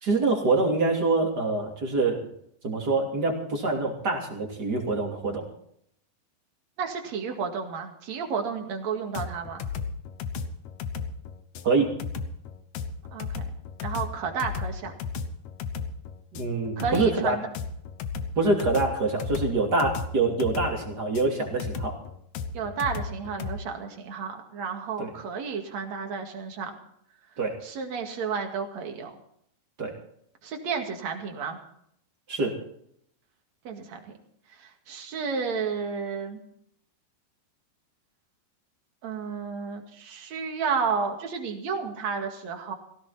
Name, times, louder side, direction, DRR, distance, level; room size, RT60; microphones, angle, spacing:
voice 1, 0.0-2.3 2.6-5.4 11.6-11.9 16.3-17.4 18.4-21.9 25.0-25.1 27.4-27.6 29.8-29.9 32.3-32.5, right 3 dB, 30° right, 1 dB, 2.9 m, -25 dB
voice 2, 6.8-9.6 13.1-13.4 13.8-14.9 16.8-17.5 22.5-26.8 27.6-29.1 30.4-31.6 33.6-34.1 34.6-36.4 39.0-42.7, right 5 dB, 50° right, 4 dB, 3.0 m, -32 dB
sound 1, 9.1-23.6, left 6 dB, 65° left, 1.8 m, -34 dB
17.0 x 16.5 x 4.3 m, 0.70 s
omnidirectional pair, 4.4 m